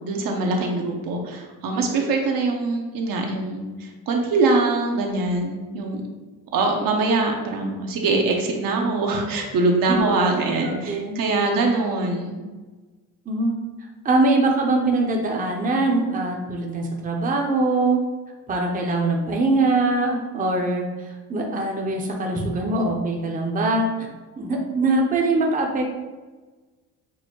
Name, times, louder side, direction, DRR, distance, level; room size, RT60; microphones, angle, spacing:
voice 1, 0.0-6.0 6.5-12.4, right 3 dB, 70° right, 1 dB, 0.8 m, -23 dB
voice 2, 10.6-11.2 13.3-13.6 14.0-18.0 18.5-23.9 24.4-25.8, right 2 dB, 25° right, 1 dB, 0.6 m, -22 dB
6.1 x 2.1 x 2.9 m, 1.3 s
cardioid pair, 100°, 36 cm